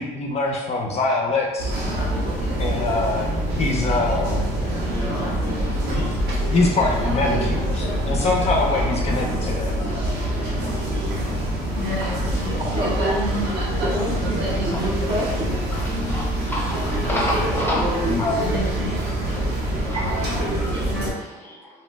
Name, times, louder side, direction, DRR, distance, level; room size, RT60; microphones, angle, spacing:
voice 1, 0.0-1.7 2.6-4.5 5.9-6.0 6.5-9.7 18.1-18.4, left 3 dB, 40° left, 0 dB, 0.4 m, -24 dB
sound 1, 1.6-21.1, right 1 dB, 70° right, 0.9 m, -24 dB
voice 2, 4.9-6.1 9.8-10.0 10.4-12.1 13.6-13.7 14.6-14.9 15.7-15.8 16.1-17.8 18.2-18.3 19.2-19.5 19.8-20.0 20.6-21.6, left 1 dB, 15° left, -3 dB, 0.8 m, -32 dB
voice 3, 12.6-13.2 13.5-15.6 17.4-18.6 19.9-20.0, right 1 dB, 30° right, -2 dB, 0.5 m, -29 dB
2.7 x 2.1 x 3.2 m, 1.1 s
cardioid pair, 110°, 17 cm